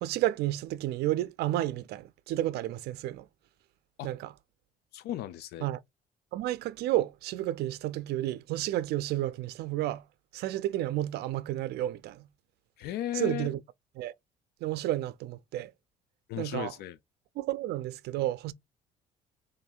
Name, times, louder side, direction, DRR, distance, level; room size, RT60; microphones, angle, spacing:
voice 1, 0.0-3.3 4.0-4.3 5.6-5.8 6.3-10.0 10.3-12.3 13.1-13.6 14.0-14.1 14.6-15.7 16.4-16.7 17.4-18.5, right 14 dB, 75° right, 0.4 m, -31 dB
voice 2, 4.9-5.7 12.8-13.5 16.3-17.0, left 12 dB, 75° left, 0.4 m, -35 dB
3.1 x 2.6 x 4.4 m
cardioid pair, 110°, 17 cm